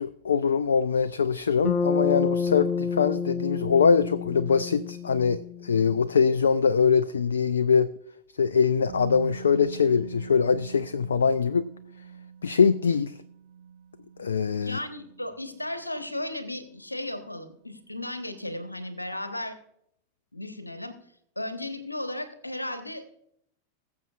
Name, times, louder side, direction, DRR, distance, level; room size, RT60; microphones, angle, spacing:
voice 1, 0.0-7.9 8.4-11.7 12.4-13.1 14.2-14.8, left 6 dB, 70° left, 15 dB, 0.3 m, -23 dB
Bass guitar, 1.6-6.0, left 5 dB, 25° left, 1.1 m, -29 dB
Musical instrument, 8.9-16.8 17.1-17.2, right 7 dB, 65° right, 0.8 m, -44 dB
voice 2, 14.6-19.6 20.3-21.0 21.4-23.1, left 1 dB, 85° left, 9 dB, 1.1 m, -35 dB
20.0 x 7.4 x 2.4 m, 0.72 s
figure-of-eight pair, 90°, 0 cm